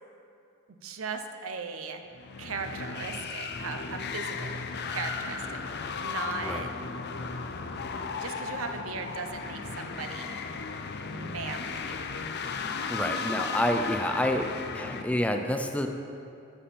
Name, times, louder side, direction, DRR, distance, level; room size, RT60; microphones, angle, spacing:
voice 1, 0.8-2.0 2.4-4.6 4.9-6.7 8.1-10.4 11.1-12.0, right 5 dB, 80° right, 6 dB, 0.8 m, -38 dB
sound 1, 2.1-15.0, left 5 dB, 55° left, 0.6 m, -35 dB
voice 2, 12.9-14.5 14.7-15.9, left 1 dB, 5° left, 5 dB, 0.5 m, -28 dB
13.0 x 7.1 x 4.3 m, 2.6 s
head